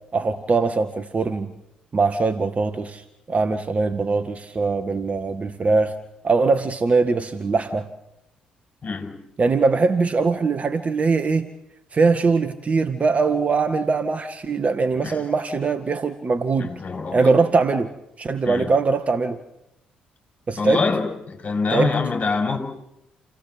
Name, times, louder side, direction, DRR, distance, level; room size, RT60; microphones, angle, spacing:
voice 1, 0.1-1.5 1.9-5.9 6.2-7.9 9.4-11.5 11.9-16.7 17.1-17.9 18.2-19.4 20.5-20.8 21.7-21.9, right 4 dB, 40° right, 10 dB, 1.9 m, -21 dB
voice 2, 8.8-9.2 15.0-15.2 16.6-17.3 18.5-18.7 20.6-22.6, left 4 dB, 40° left, 5 dB, 6.3 m, -25 dB
28.5 x 18.0 x 8.0 m, 0.83 s
hypercardioid pair, 50°, 4 cm